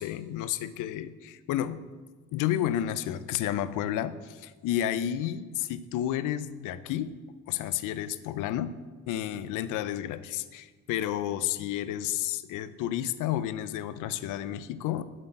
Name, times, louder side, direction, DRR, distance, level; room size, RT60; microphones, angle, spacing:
voice 1, 0.0-1.8 2.3-7.1 7.5-8.8 9.1-15.0, left 11 dB, 90° left, 15 dB, 0.5 m, -31 dB
7.7 x 7.7 x 4.5 m, 1.4 s
cardioid pair, 90°, 30 cm